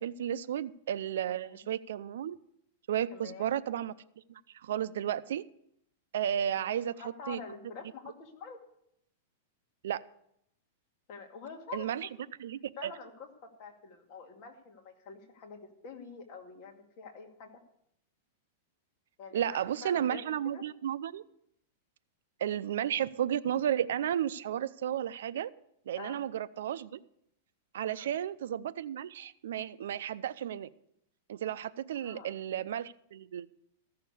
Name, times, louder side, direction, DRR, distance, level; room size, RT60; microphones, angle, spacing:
voice 1, 0.0-2.4 2.9-3.9 4.5-5.4 6.1-6.9 7.3-7.4 9.8-10.0 11.7-12.1 12.4-12.9 19.3-21.2 22.4-25.5 25.9-27.0 27.7-30.7 31.3-33.5, right 10 dB, 75° right, 15 dB, 0.5 m, -33 dB
voice 2, 1.3-1.7 3.1-3.5 6.5-6.6 7.0-8.6 11.1-11.9 12.8-13.3 13.6-17.5 19.2-20.6 26.0-26.2 27.9-28.1 32.0-32.6, left 5 dB, 35° left, 2 dB, 2.2 m, -47 dB
14.5 x 6.7 x 8.3 m, 0.74 s
supercardioid pair, 165°, 0 cm